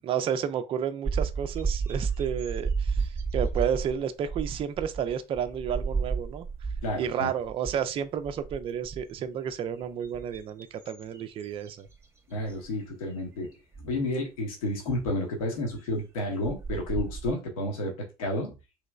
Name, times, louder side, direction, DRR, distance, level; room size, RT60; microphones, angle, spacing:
voice 1, 0.0-6.5 7.0-11.9, right 8 dB, 30° right, 0.4 m, -31 dB
sound 1, 1.1-7.1 7.4-7.8 8.2-9.2 9.8-12.1 12.5-12.7 13.7-13.8 16.0-16.1 16.4-17.3, right 5 dB, 15° right, 0.8 m, -32 dB
voice 2, 6.8-7.3 12.3-13.5 13.8-17.9 18.2-18.5, left 1 dB, 65° left, 1.0 m, -31 dB
3.1 x 2.9 x 2.3 m
figure-of-eight pair, 60°, 19 cm